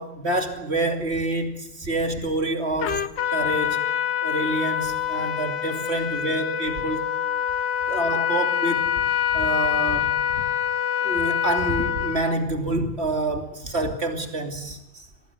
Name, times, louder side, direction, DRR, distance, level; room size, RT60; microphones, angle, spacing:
voice 1, 0.0-3.0 3.3-3.8 4.2-7.1 7.9-8.9 9.3-10.2 11.0-15.1, right 2 dB, 35° right, 3.0 m, -27 dB
Trumpet, 2.8-12.4, left 9 dB, 70° left, 1.7 m, -25 dB
26.0 x 19.5 x 8.3 m
omnidirectional pair, 2.0 m